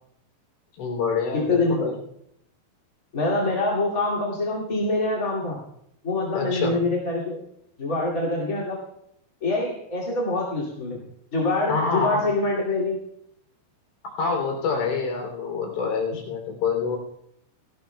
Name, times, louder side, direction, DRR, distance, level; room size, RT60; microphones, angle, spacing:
voice 1, 0.7-1.9 6.3-6.8 11.7-12.3 14.0-17.0, left 5 dB, 75° left, 1 dB, 5.3 m, -26 dB
voice 2, 1.3-1.9 3.1-5.6 6.0-7.4 7.8-8.8 9.4-11.0 11.3-13.0, left 2 dB, 30° left, -5 dB, 1.9 m, -25 dB
18.5 x 17.0 x 2.3 m, 0.76 s
omnidirectional pair, 5.3 m